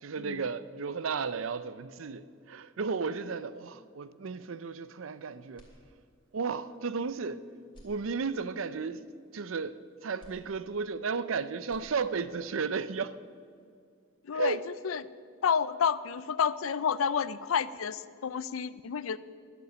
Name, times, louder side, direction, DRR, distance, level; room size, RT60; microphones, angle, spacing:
voice 1, 0.0-5.7 6.3-7.4 7.8-9.0 9.3-9.8 10.0-13.1 14.3-14.6, right 5 dB, 75° right, 0.5 m, -34 dB
sound 1, 5.5-6.4 6.9-7.0 7.6-8.7 10.2-11.3 11.6-12.5, equal, 25° left, 2.5 m, -58 dB
voice 2, 14.2-15.1 15.4-19.2, left 7 dB, 90° left, 0.5 m, -30 dB
11.0 x 8.2 x 8.4 m
head